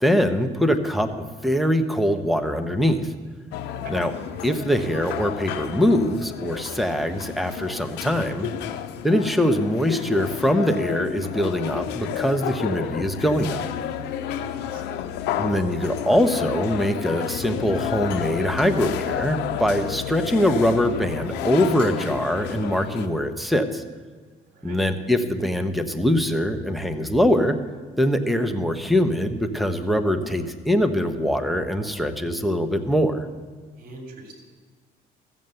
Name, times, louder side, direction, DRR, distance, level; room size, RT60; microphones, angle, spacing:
voice 1, 0.0-3.0 3.9-4.1 4.4-8.5 9.0-13.6 15.4-23.8 24.6-27.6 28.0-33.3, equal, ahead, 6 dB, 1.0 m, -23 dB
sound 1, 3.5-23.1, left 10 dB, 85° left, 0.7 m, -31 dB
voice 2, 14.2-14.9 24.5-24.8 31.8-32.1 33.8-34.3, right 3 dB, 60° right, 3 dB, 3.3 m, -44 dB
14.0 x 7.4 x 7.9 m, 1.5 s
cardioid pair, 110°, 17 cm